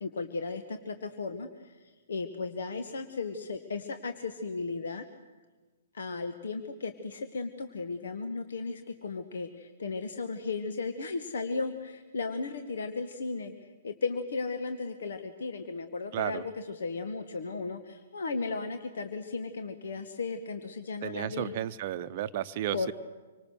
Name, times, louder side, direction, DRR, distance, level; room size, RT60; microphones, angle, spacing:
voice 1, 0.0-5.0 5.9-21.5 22.7-22.9, left 4 dB, 60° left, 7 dB, 1.5 m, -35 dB
voice 2, 16.1-16.4 21.0-22.9, right 12 dB, 40° right, 10 dB, 0.8 m, -33 dB
26.0 x 24.5 x 6.5 m, 1.3 s
figure-of-eight pair, 120°, 0 cm